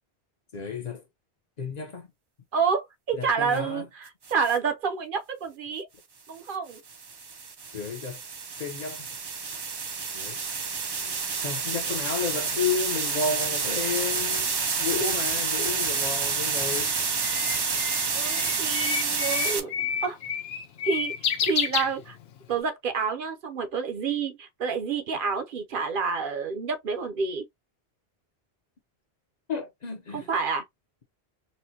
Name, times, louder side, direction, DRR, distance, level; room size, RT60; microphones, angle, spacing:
voice 1, 0.5-1.0 1.6-2.1 3.2-3.8 7.7-8.2 8.6-9.0 10.1-10.4 11.0-11.1 11.4-14.5 14.8-16.9 29.5-30.3, left 5 dB, 45° left, 0.7 m, -32 dB
voice 2, 2.5-5.9 6.3-6.8 18.1-19.7 20.0-20.2 20.8-22.2 22.5-27.4 30.1-30.7, right 5 dB, 60° right, 0.8 m, -29 dB
sound 1, 4.3-4.6 6.7-19.6, right 5 dB, 40° right, 0.3 m, -29 dB
Bird, 16.3-22.5, left 8 dB, 75° left, 0.9 m, -31 dB
4.3 x 2.1 x 2.7 m
omnidirectional pair, 1.1 m